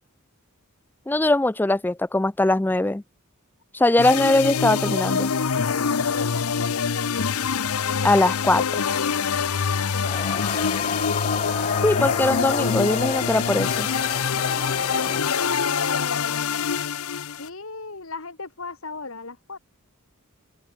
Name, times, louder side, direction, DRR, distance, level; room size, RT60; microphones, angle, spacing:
voice 1, 1.1-3.0 3.7-5.3 8.0-8.8 11.8-13.9, left 2 dB, 10° left, 0.3 m, -21 dB
sound 1, 4.0-17.5, left 6 dB, 85° left, 0.8 m, -25 dB
voice 2, 5.3-7.4 9.4-11.1 14.4-14.8 15.3-16.7 17.1-19.6, left 3 dB, 70° left, 2.5 m, -36 dB
sound 2, 10.0-15.2, left 5 dB, 30° left, 0.8 m, -30 dB
open air
head